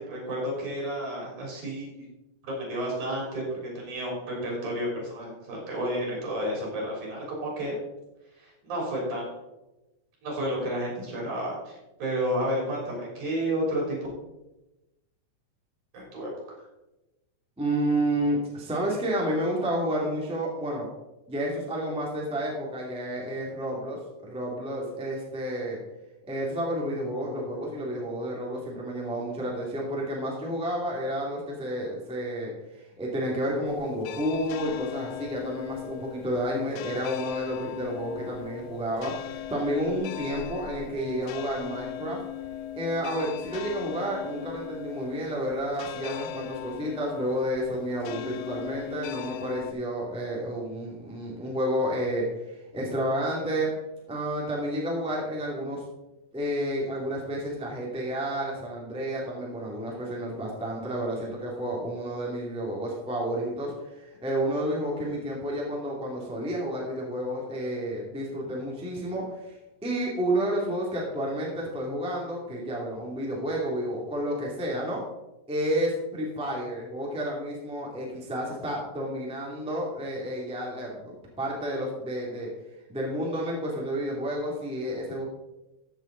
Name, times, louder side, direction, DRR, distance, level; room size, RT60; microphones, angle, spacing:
voice 1, 0.0-2.0 2.4-7.8 8.4-9.4 10.2-14.0 15.9-16.3, equal, 60° right, -3 dB, 4.9 m, -31 dB
voice 2, 17.6-20.9 21.3-25.8 26.3-42.2 42.7-53.7 54.1-55.8 56.3-69.5 69.8-75.0 75.5-82.5 82.9-85.2, equal, ahead, -3 dB, 1.6 m, -30 dB
niedernhall midnight churchbells, 33.6-49.7, left 11 dB, 90° left, 2.4 m, -39 dB
14.5 x 7.3 x 3.9 m, 0.97 s
omnidirectional pair, 4.0 m